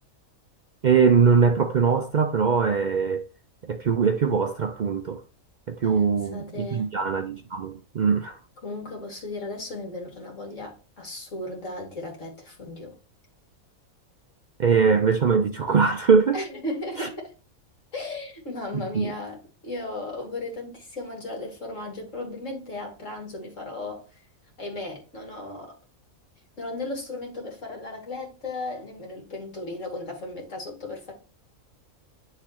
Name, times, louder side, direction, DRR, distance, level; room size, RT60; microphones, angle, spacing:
voice 1, 0.8-3.3 3.7-5.2 5.7-8.4 14.6-16.4 17.0-17.1 18.7-19.1, right 5 dB, 75° right, 0.4 m, -22 dB
voice 2, 5.8-6.9 8.6-12.9 16.3-17.3 17.9-24.2 24.6-25.8 26.6-31.1, left 2 dB, 65° left, 2.8 m, -36 dB
10.0 x 3.8 x 3.0 m
omnidirectional pair, 1.5 m